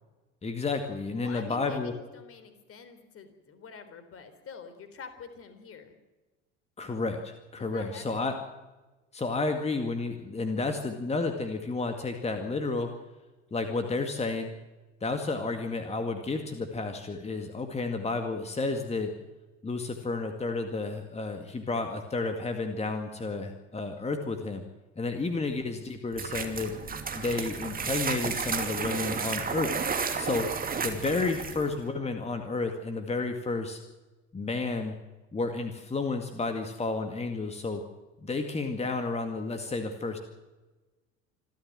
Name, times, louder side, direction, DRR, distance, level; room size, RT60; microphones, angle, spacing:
voice 1, 0.4-1.9 6.8-8.3 9.1-12.9 13.5-14.5 15.0-19.1 19.6-24.6 25.0-26.7 27.1-29.7 30.2-30.5 30.8-33.8 34.3-34.9 35.3-37.8 38.2-40.2, left 3 dB, 15° left, 6 dB, 2.1 m, -31 dB
voice 2, 1.2-6.0 7.7-8.4, left 5 dB, 35° left, 9 dB, 3.9 m, -46 dB
sound 1, 26.1-31.7, right 5 dB, 25° right, 2.8 m, -32 dB
27.0 x 13.0 x 7.6 m, 1.2 s
figure-of-eight pair, 70°, 37 cm